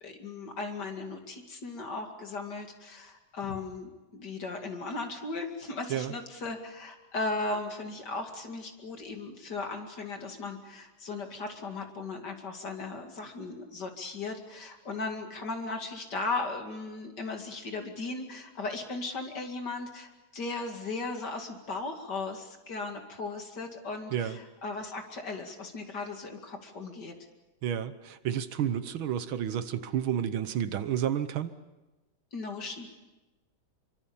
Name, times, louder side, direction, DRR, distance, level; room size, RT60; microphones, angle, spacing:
voice 1, 0.0-27.1 32.3-32.9, left 3 dB, 50° left, 4 dB, 3.0 m, -37 dB
voice 2, 27.6-31.5, right 9 dB, 75° right, 12 dB, 1.8 m, -31 dB
26.0 x 24.0 x 7.2 m, 1.1 s
omnidirectional pair, 2.3 m